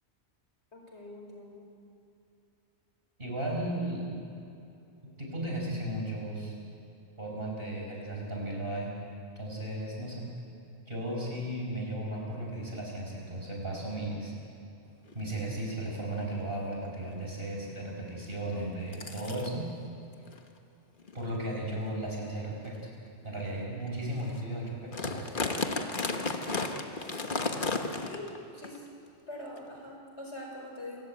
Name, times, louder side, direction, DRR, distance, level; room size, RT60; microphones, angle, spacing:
voice 1, 0.7-1.7 27.9-28.9 29.3-31.0, left 1 dB, 80° left, 0 dB, 5.2 m, -43 dB
voice 2, 3.2-4.2 5.2-6.6 7.2-8.9 9.4-10.3 10.9-14.3 15.1-19.7 21.1-22.8 23.2-25.3, right 1 dB, 55° right, -1 dB, 6.1 m, -35 dB
sound 1, 15.1-15.2 15.6-15.8 16.4-16.5 16.8-17.1 18.2-18.3 18.9-19.5 20.3-20.4 21.0-21.2 21.8-21.9 22.6-22.8 23.3-23.5 23.9-24.0 24.1-24.4 24.7-28.4 28.6-28.8 29.6-29.7, left 3 dB, 50° left, 1.5 m, -33 dB
27.5 x 15.5 x 9.0 m, 2.6 s
omnidirectional pair, 1.1 m